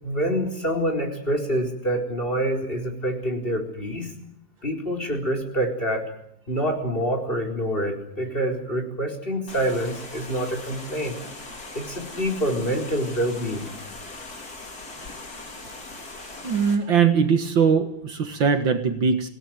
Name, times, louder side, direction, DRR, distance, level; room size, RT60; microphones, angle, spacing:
voice 1, 0.0-4.1 4.6-6.0 6.5-11.2 11.7-13.7, equal, 25° left, 4 dB, 4.5 m, -26 dB
sound 1, 9.5-16.8, left 2 dB, 45° left, 3.8 m, -40 dB
voice 2, 16.4-19.3, right 6 dB, 60° right, 8 dB, 2.2 m, -21 dB
25.5 x 17.5 x 9.4 m, 0.75 s
omnidirectional pair, 2.4 m